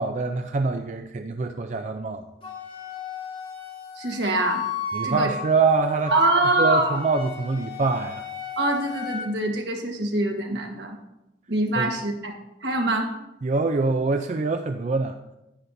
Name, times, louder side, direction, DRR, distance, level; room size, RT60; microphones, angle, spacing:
voice 1, 0.0-2.2 4.9-6.1 6.6-8.2 11.8-11.9 13.4-15.2, right 4 dB, 40° right, 6 dB, 0.4 m, -24 dB
Wind instrument woodwind instrument, 2.4-9.3, left 5 dB, 30° left, 1.7 m, -33 dB
voice 2, 4.0-4.6 5.0-5.3 6.1-7.0 8.6-11.0 11.5-12.3 12.6-13.1, right 2 dB, 80° right, 2 dB, 1.4 m, -24 dB
10.0 x 9.6 x 2.6 m, 0.93 s
head